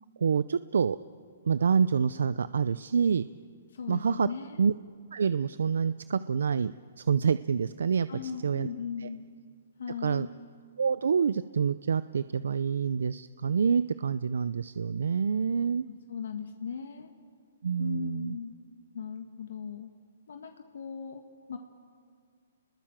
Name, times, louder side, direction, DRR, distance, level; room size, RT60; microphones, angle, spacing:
voice 1, 0.2-1.0 1.5-3.3 3.9-4.3 4.6-4.7 5.1-8.7 9.0-9.1 10.0-10.3 10.8-15.8 17.6-18.4, right 6 dB, 80° right, 15 dB, 0.6 m, -27 dB
voice 2, 3.7-4.6 8.1-9.2 9.8-10.3 15.9-17.1 17.8-18.5 18.9-19.9 20.3-21.2 21.5-21.6, left 6 dB, 75° left, 5 dB, 2.0 m, -38 dB
30.0 x 21.0 x 7.4 m, 2.1 s
hypercardioid pair, 160°, 0 cm